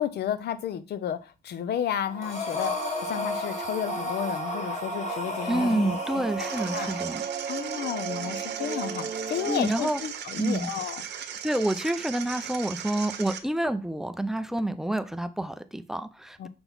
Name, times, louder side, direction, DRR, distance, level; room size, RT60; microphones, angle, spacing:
voice 1, 0.0-6.2 6.7-6.9 7.5-11.0 16.4-16.5, left 9 dB, 65° left, 0.7 m, -32 dB
sound 1, 2.0-10.1, right 6 dB, 40° right, 0.7 m, -36 dB
Breathing, 2.2-7.2, left 3 dB, 40° left, 1.4 m, -34 dB
voice 2, 5.5-7.2 9.5-10.0 10.4-10.7 11.4-16.5, right 1 dB, ahead, 0.4 m, -28 dB
sound 2, 6.4-13.4, right 9 dB, 70° right, 1.0 m, -38 dB
6.0 x 3.8 x 5.3 m
cardioid pair, 155°, 19 cm